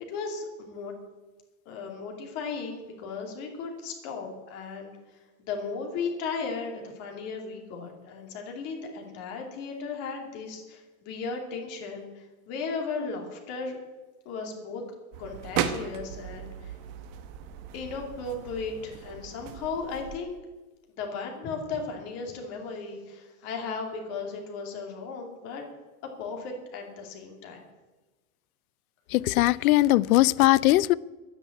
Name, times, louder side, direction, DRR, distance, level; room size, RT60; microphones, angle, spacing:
voice 1, 0.1-1.0 1.7-13.8 14.2-14.8 15.2-16.7 17.7-20.4 21.0-25.6 26.2-27.6, left 4 dB, 35° left, 2 dB, 2.6 m, -36 dB
sound 1, 15.1-20.2, right 9 dB, 40° right, 1.0 m, -36 dB
voice 2, 29.1-30.9, left 17 dB, 85° left, 22 dB, 0.6 m, -20 dB
11.5 x 9.9 x 8.5 m, 1.2 s
supercardioid pair, 175°, 42 cm